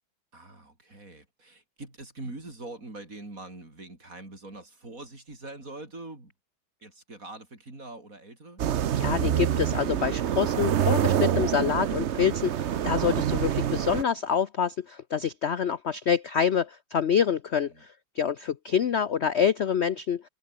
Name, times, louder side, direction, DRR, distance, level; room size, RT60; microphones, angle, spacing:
voice 1, 0.3-6.3 6.8-8.6 17.7-17.8, right 2 dB, 40° right, 6.0 m, -43 dB
sound 1, 8.6-14.0, right 10 dB, 65° right, 0.6 m, -26 dB
voice 2, 8.9-20.2, left 7 dB, 60° left, 0.7 m, -26 dB
omnidirectional pair, 2.1 m